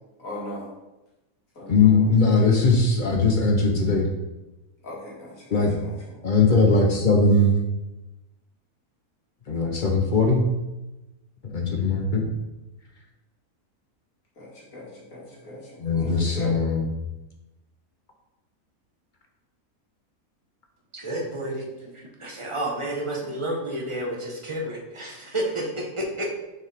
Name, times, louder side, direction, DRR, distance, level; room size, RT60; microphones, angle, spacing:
voice 1, 0.2-0.7 1.5-2.1 4.8-5.9 14.4-16.5, left 1 dB, 70° left, -6 dB, 2.3 m, -39 dB
voice 2, 1.7-4.1 5.5-5.7 6.2-7.6 9.5-10.5 11.4-12.3 15.8-16.8, left 3 dB, 45° left, 2 dB, 0.7 m, -20 dB
voice 3, 20.9-26.3, right 1 dB, 25° right, -1 dB, 0.9 m, -30 dB
6.3 x 4.7 x 3.4 m, 1.0 s
omnidirectional pair, 1.5 m